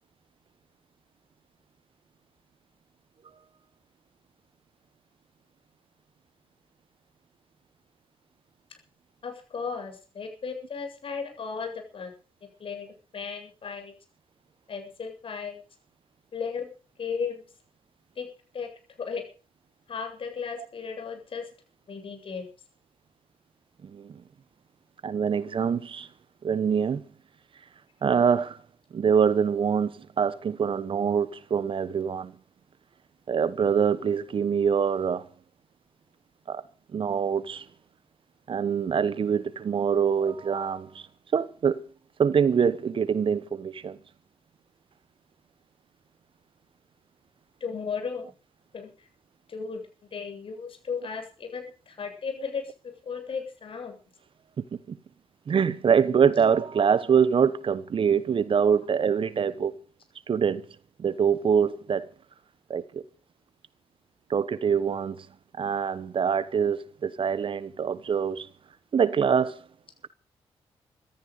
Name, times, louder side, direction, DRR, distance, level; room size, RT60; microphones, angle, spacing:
voice 1, 9.2-12.1 12.6-13.9 14.7-15.6 16.3-16.7 17.0-17.4 18.2-18.3 18.5-18.7 19.0-19.3 19.9-21.5 21.9-22.5 47.6-48.3 48.7-49.1 49.5-49.8 50.1-52.6 53.0-54.0, left 5 dB, 55° left, 7.9 m, -35 dB
voice 2, 23.8-24.2 25.0-26.1 26.4-27.0 28.0-28.6 28.9-32.3 33.3-35.3 36.5-36.6 36.9-37.7 38.5-41.0 41.3-41.8 42.2-44.0 54.6-55.0 55.5-59.7 60.3-60.6 61.0-62.1 62.7-63.0 64.3-65.3 65.6-68.5 68.9-69.6, right 7 dB, 50° right, 1.2 m, -24 dB
15.0 x 13.5 x 6.7 m
cardioid pair, 75°, 11 cm